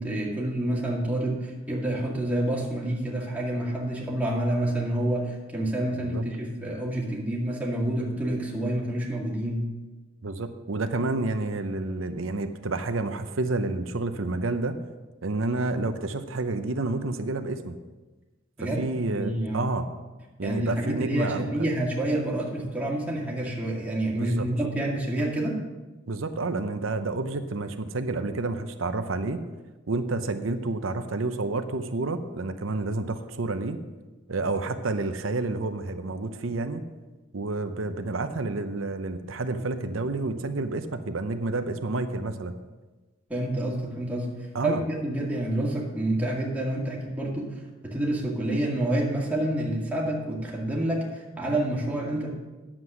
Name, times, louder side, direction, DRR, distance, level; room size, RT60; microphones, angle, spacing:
voice 1, 0.0-9.6 18.6-18.8 19.1-19.6 20.4-25.6 43.3-52.4, right 1 dB, 10° right, -3 dB, 2.1 m, -28 dB
voice 2, 10.2-14.7 15.2-17.8 18.6-19.9 20.4-21.5 24.1-24.5 26.1-29.4 29.9-33.8 34.3-36.8 37.3-42.5 44.5-44.8, right 2 dB, 80° right, 9 dB, 0.8 m, -29 dB
9.8 x 7.5 x 6.2 m, 1.2 s
head